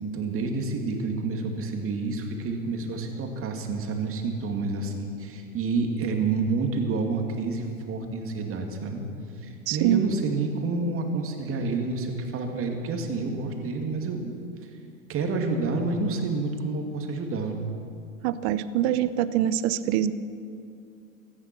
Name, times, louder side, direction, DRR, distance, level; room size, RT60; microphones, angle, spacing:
voice 1, 0.0-9.0 9.4-14.4 14.6-14.7 15.1-17.6, right 3 dB, 30° right, 3 dB, 2.5 m, -29 dB
voice 2, 9.7-10.1 18.2-20.1, right 11 dB, 50° right, 15 dB, 0.9 m, -24 dB
17.5 x 13.5 x 6.1 m, 2.5 s
hypercardioid pair, 105°, 43 cm